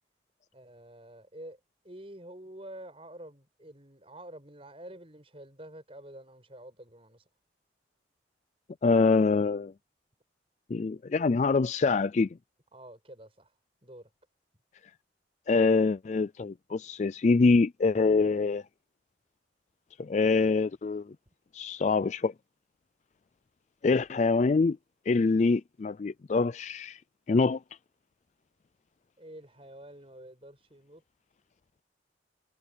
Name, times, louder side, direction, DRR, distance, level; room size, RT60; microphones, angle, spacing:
voice 1, 0.5-1.6 1.8-7.2 12.7-13.5 13.8-14.1 29.2-31.0, right 1 dB, 30° right, 7.5 m, -48 dB
voice 2, 8.8-9.7 10.7-12.3 15.5-18.6 20.0-21.1 21.5-22.3 23.8-24.8 25.1-27.0 27.3-27.6, left 4 dB, 40° left, 0.3 m, -25 dB
head